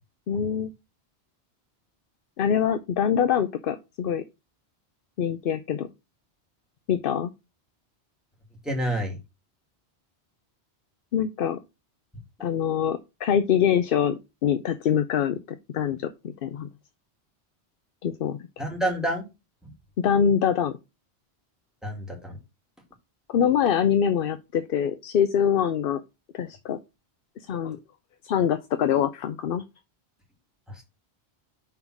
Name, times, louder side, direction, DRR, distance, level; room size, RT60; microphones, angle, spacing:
voice 1, 0.3-0.7 2.4-4.2 5.2-5.9 6.9-7.3 11.1-11.6 12.4-15.4 15.7-16.7 18.0-18.4 20.0-20.8 23.3-26.0 26.3-26.8 27.5-27.8 28.2-29.6, left 8 dB, 60° left, 0.7 m, -24 dB
voice 2, 8.6-9.2 18.6-19.3 19.6-19.7 21.8-22.4 30.7-30.8, right 1 dB, ahead, 2.0 m, -28 dB
5.8 x 3.9 x 5.8 m
omnidirectional pair, 1.1 m